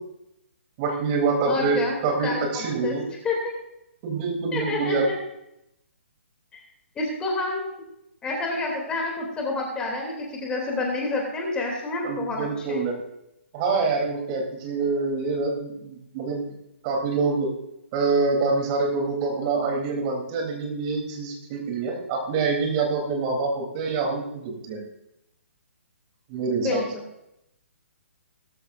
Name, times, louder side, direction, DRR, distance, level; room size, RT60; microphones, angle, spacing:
voice 1, 0.8-3.0 4.0-5.1 12.0-13.0 13.5-16.5 16.8-17.5 17.9-24.8 26.3-26.8, right 4 dB, 30° right, 1 dB, 3.4 m, -26 dB
voice 2, 1.4-3.0 3.2-3.6 4.5-5.1 6.5-6.6 6.9-7.7 8.2-12.9 26.6-26.8, left 3 dB, 15° left, 0 dB, 3.0 m, -29 dB
18.5 x 14.0 x 2.6 m, 0.82 s
figure-of-eight pair, 130°, 7 cm